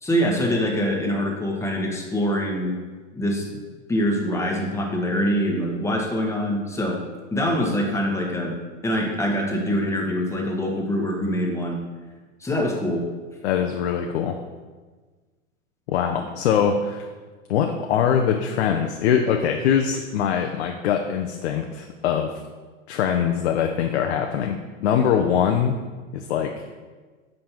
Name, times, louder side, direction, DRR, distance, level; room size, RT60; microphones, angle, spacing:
voice 1, 0.0-2.7 3.1-3.6 3.9-7.0 7.3-8.6 8.8-11.8 12.4-13.0, equal, 5° left, -1 dB, 1.1 m, -24 dB
voice 2, 13.4-14.4 15.9-17.1 17.5-22.3 22.9-25.8 26.1-26.5, left 8 dB, 60° left, 4 dB, 0.6 m, -22 dB
7.6 x 5.2 x 3.0 m, 1.4 s
hypercardioid pair, 115°, 37 cm